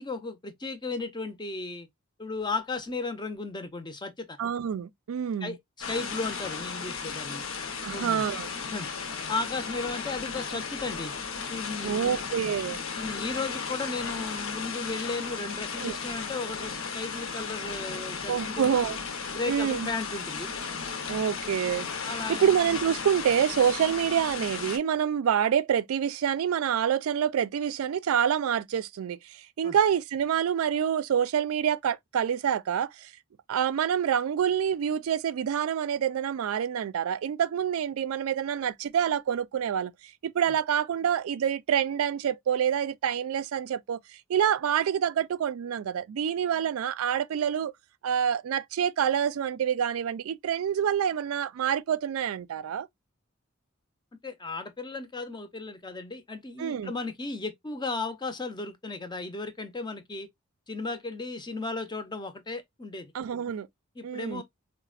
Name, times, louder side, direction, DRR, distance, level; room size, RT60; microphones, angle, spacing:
voice 1, 0.0-1.9 2.2-4.4 5.4-5.6 5.9-7.5 7.9-8.2 8.6-8.9 9.3-11.1 11.5-12.2 13.0-18.8 19.3-20.5 22.0-22.6 29.6-29.8 54.2-60.3 60.7-63.1 64.0-64.4, left 3 dB, 20° left, 0.5 m, -35 dB
voice 2, 4.4-5.6 7.8-8.5 11.8-12.8 15.8-16.0 18.3-19.0 19.5-19.9 21.1-21.9 22.3-33.1 33.5-47.7 48.0-52.9 56.6-56.9 63.1-63.7 64.0-64.4, right 8 dB, 85° right, 0.3 m, -27 dB
sound 1, 5.8-24.8, left 5 dB, 70° left, 0.7 m, -35 dB
4.0 x 2.1 x 2.3 m
head